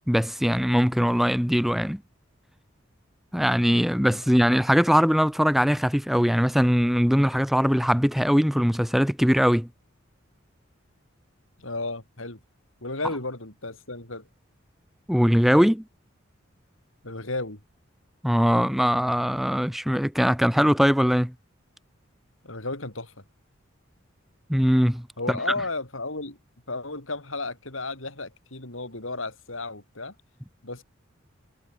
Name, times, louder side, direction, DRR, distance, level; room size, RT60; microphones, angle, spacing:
voice 1, 0.1-2.0 3.3-9.7 15.1-15.8 18.2-21.3 24.5-25.4, equal, ahead, 1.4 m, -21 dB
voice 2, 11.6-12.4 12.8-14.3 17.0-17.6 22.4-23.1 25.2-26.4 26.7-30.1 30.6-30.8, left 2 dB, 80° left, 5.6 m, -33 dB
head